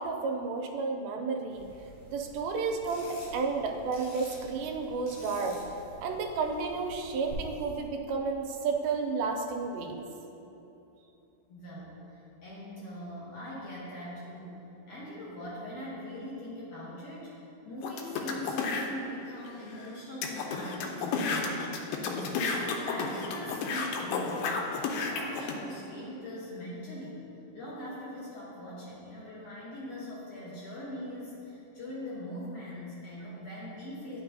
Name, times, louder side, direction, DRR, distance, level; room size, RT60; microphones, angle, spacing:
voice 1, 0.0-1.6 2.1-5.6 6.0-10.0, right 4 dB, 80° right, 2 dB, 2.4 m, -32 dB
sound 1, 1.5-7.3, equal, 55° left, 2.2 m, -50 dB
voice 2, 11.5-27.3 27.5-34.2, left 1 dB, 75° left, -8 dB, 1.5 m, -42 dB
sound 2, 17.8-18.9 19.5-19.6 19.8-19.9 20.2-25.5, left 4 dB, 90° left, 2.5 m, -32 dB
10.0 x 5.5 x 2.7 m, 2.9 s
omnidirectional pair, 4.3 m